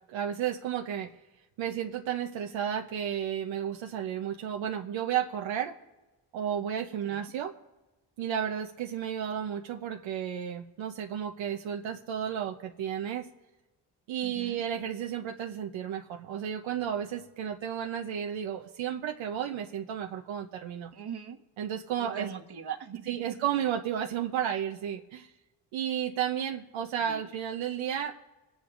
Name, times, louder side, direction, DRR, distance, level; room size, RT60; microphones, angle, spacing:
voice 1, 0.1-1.1 1.6-5.7 6.3-7.5 8.2-13.3 14.1-20.9 21.6-22.3 23.1-25.3 25.7-28.2, right 9 dB, 90° right, 3 dB, 0.8 m, -32 dB
voice 2, 14.2-14.6 20.9-21.4 22.0-23.4 27.0-27.3, right 8 dB, 60° right, 5 dB, 1.3 m, -41 dB
25.0 x 10.0 x 2.5 m, 1.1 s
supercardioid pair, 55°, 44 cm